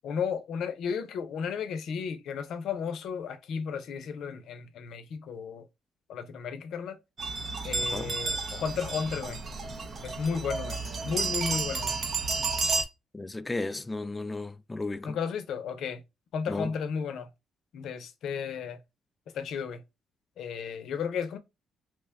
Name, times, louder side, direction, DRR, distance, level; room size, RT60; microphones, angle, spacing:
voice 1, 0.0-5.7 6.1-7.0 7.6-9.4 10.0-12.0 15.0-16.0 16.3-17.3 17.7-18.8 19.3-19.8 20.4-21.4, left 6 dB, 75° left, 0.6 m, -34 dB
sound 1, 7.2-12.8, right 4 dB, 45° right, 0.7 m, -31 dB
voice 2, 13.1-15.2 16.5-16.7, left 2 dB, 20° left, 0.3 m, -34 dB
3.1 x 2.2 x 3.4 m
cardioid pair, 90°, 0 cm